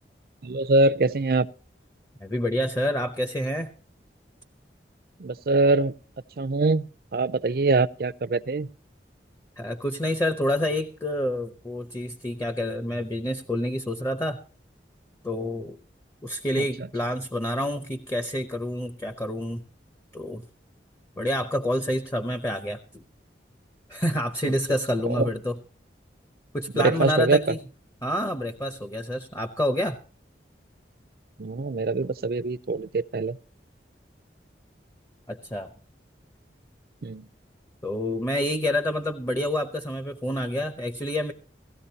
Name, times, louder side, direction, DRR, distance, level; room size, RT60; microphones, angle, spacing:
voice 1, 0.4-1.5 5.2-5.9 6.4-6.9 7.1-8.7 16.8-16.9 25.0-25.3 26.7-27.4 31.4-33.4 37.0-37.2, right 3 dB, 55° right, 0.5 m, -23 dB
voice 2, 2.2-3.7 9.6-14.4 15.2-15.8 16.2-19.6 20.1-20.4 21.2-23.0 23.9-25.6 26.5-27.6 28.0-30.0 35.3-35.7 37.8-41.3, left 1 dB, 15° left, 0.7 m, -28 dB
18.0 x 13.5 x 2.8 m
head